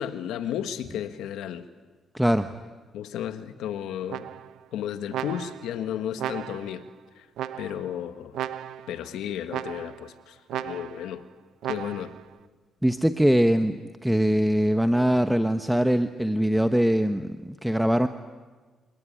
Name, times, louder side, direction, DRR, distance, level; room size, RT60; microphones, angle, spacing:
voice 1, 0.0-1.7 2.9-4.3 4.7-6.8 7.2-7.3 7.6-8.3 8.9-11.2 11.7-12.2, left 10 dB, 85° left, 10 dB, 1.6 m, -33 dB
voice 2, 2.1-2.5 12.8-18.1, equal, 5° right, 9 dB, 1.0 m, -22 dB
sound 1, 4.1-4.6 5.1-5.8 6.2-6.8 7.4-7.9 8.3-9.0 9.5-10.1 10.5-11.1 11.6-12.2, right 11 dB, 80° right, 0.8 m, -35 dB
28.0 x 18.0 x 10.0 m, 1.4 s
cardioid pair, 90°, 0 cm